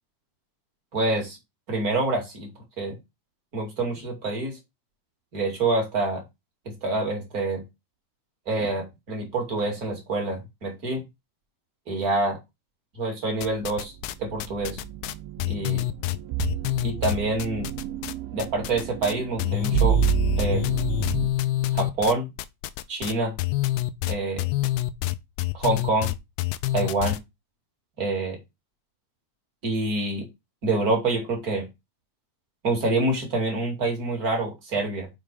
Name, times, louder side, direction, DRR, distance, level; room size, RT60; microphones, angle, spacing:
voice 1, 0.9-1.4 1.7-2.5 2.8-2.9 3.5-4.6 5.3-6.2 6.7-7.6 8.5-11.0 11.9-12.4 13.0-13.9 14.2-14.8 15.5-15.9 16.8-17.7 18.3-20.0 20.4-20.6 21.7-22.3 22.9-23.3 24.1-24.5 25.5-26.1 26.7-27.2 28.0-28.4 29.6-30.3 30.6-31.7 32.6-35.1, right 2 dB, 30° right, 2 dB, 2.2 m, -26 dB
sound 1, 13.4-14.1 14.4-18.1 18.4-19.1 19.4-27.2, left 16 dB, 85° left, 2.6 m, -27 dB
sound 2, 14.0-21.3, right 10 dB, 80° right, 2.4 m, -29 dB
6.4 x 5.0 x 5.3 m, 0.22 s
omnidirectional pair, 4.5 m